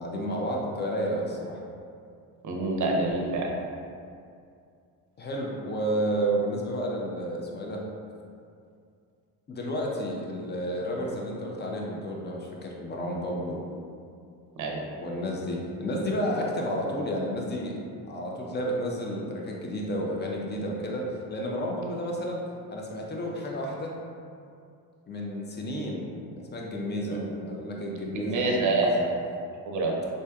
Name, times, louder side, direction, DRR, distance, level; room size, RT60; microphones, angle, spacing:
voice 1, 0.0-1.6 5.2-7.8 9.5-13.7 14.9-17.8 18.1-22.4 22.7-23.9 25.1-26.1 26.5-29.1, equal, 25° left, -1 dB, 0.5 m, -31 dB
voice 2, 2.4-3.5 14.6-14.8 27.1-27.2 28.1-28.9 29.7-30.0, right 2 dB, 40° right, 0 dB, 0.6 m, -26 dB
3.2 x 2.6 x 2.2 m, 2.4 s
supercardioid pair, 65°, 46 cm